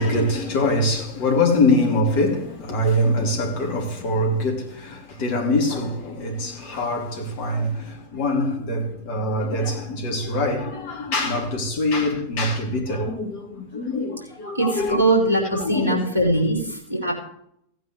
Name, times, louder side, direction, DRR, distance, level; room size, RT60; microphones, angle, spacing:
voice 1, 0.0-15.0 15.6-16.1, left 1 dB, 45° left, 2.9 m, -24 dB
voice 2, 14.5-17.1, right 1 dB, 75° right, 4.3 m, -21 dB
16.5 x 9.1 x 3.3 m
figure-of-eight pair, 90°, 0 cm